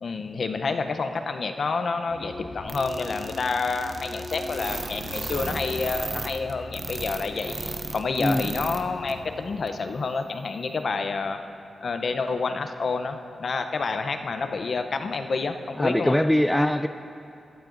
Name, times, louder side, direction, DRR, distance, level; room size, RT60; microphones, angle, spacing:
voice 1, 0.0-11.4 11.8-16.1, left 4 dB, 55° left, 7 dB, 0.6 m, -29 dB
sound 1, 2.1-9.6, left 2 dB, 80° left, 3.1 m, -40 dB
sound 2, 2.7-8.8 9.1-9.2 9.7-9.8, right 3 dB, 40° right, 0.7 m, -34 dB
voice 2, 8.2-8.5 15.8-16.9, left 1 dB, 10° left, 9 dB, 0.3 m, -22 dB
16.5 x 12.0 x 2.6 m, 2.6 s
wide cardioid pair, 100°, 0 cm